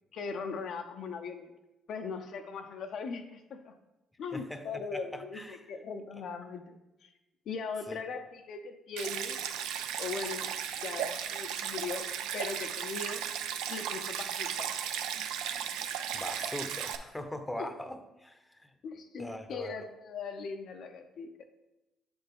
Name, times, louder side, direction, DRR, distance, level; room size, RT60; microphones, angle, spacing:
voice 1, 0.1-1.5 1.9-3.7 4.2-7.1 7.5-9.4 10.0-12.1 12.3-13.2 13.7-14.7 17.5-17.7 18.8-21.5, left 5 dB, 65° left, 5 dB, 0.5 m, -39 dB
voice 2, 4.3-4.6 4.9-5.6 7.9-8.0 16.1-18.7 19.2-19.9, left 1 dB, 10° left, 8 dB, 0.8 m, -41 dB
Stream, 9.0-17.0, right 9 dB, 80° right, 0.4 m, -35 dB
7.6 x 4.3 x 3.5 m, 0.99 s
hypercardioid pair, 55°, 0 cm